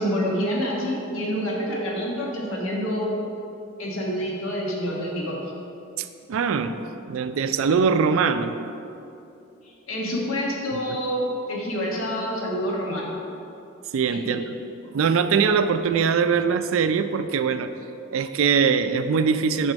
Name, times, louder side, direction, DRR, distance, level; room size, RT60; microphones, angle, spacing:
voice 1, 0.0-3.1 3.8-5.4 9.9-13.1 14.1-14.4, equal, 80° left, -3 dB, 1.4 m, -27 dB
voice 2, 6.0-6.8 7.1-8.5 13.9-14.4 14.9-17.7 18.1-19.7, right 6 dB, 75° right, 10 dB, 0.4 m, -22 dB
6.2 x 5.4 x 5.1 m, 2.7 s
head